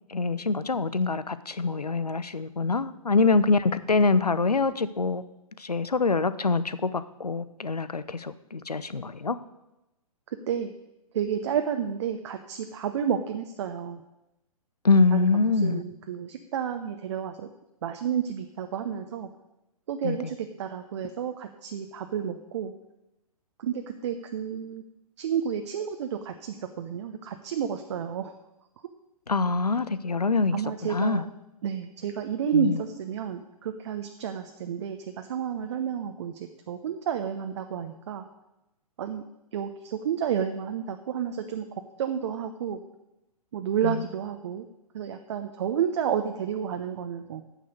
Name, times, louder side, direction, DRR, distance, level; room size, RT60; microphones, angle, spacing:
voice 1, 0.1-5.2 5.6-9.4 14.8-15.8 20.0-20.2 29.3-30.6 30.8-31.3 32.5-32.8 43.8-44.0, left 4 dB, 85° left, 15 dB, 0.7 m, -25 dB
voice 2, 10.3-10.7 11.1-14.0 15.1-15.3 15.6-17.5 17.8-19.3 19.9-22.7 23.6-24.8 25.2-28.3 30.5-31.3 31.6-38.2 39.0-39.2 39.5-41.7 42.0-42.8 43.5-44.7 44.9-47.4, right 8 dB, 50° right, 6 dB, 0.8 m, -31 dB
9.0 x 6.7 x 8.1 m, 0.93 s
figure-of-eight pair, 120°, 19 cm